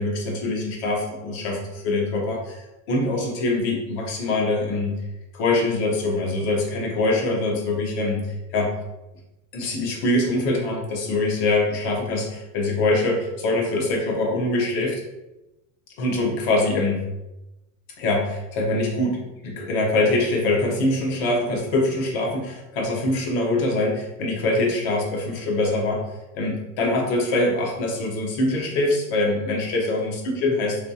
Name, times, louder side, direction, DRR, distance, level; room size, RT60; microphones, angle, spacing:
voice 1, 0.0-2.6 2.9-4.9 5.3-8.3 8.5-8.7 9.5-15.0 16.0-17.0 18.0-26.0 26.3-30.8, left 2 dB, 60° left, 0 dB, 1.1 m, -23 dB
3.2 x 3.0 x 2.7 m, 0.98 s
supercardioid pair, 130°, 38 cm